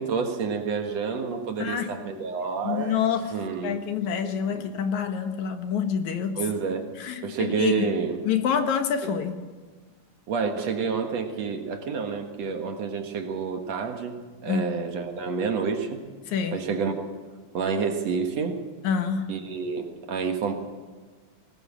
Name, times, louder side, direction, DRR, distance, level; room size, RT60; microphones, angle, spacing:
voice 1, 0.0-3.8 4.5-4.6 6.4-6.9 7.2-8.2 10.3-16.0 16.5-17.1 17.5-18.6 19.3-20.5, right 5 dB, 60° right, 5 dB, 2.6 m, -29 dB
voice 2, 1.6-2.0 2.6-3.3 3.6-6.4 7.0-7.9 8.2-9.4 14.5-14.7 16.3-16.6 18.8-19.4, left 7 dB, 75° left, 7 dB, 2.6 m, -27 dB
21.0 x 18.5 x 7.4 m, 1.4 s
omnidirectional pair, 3.4 m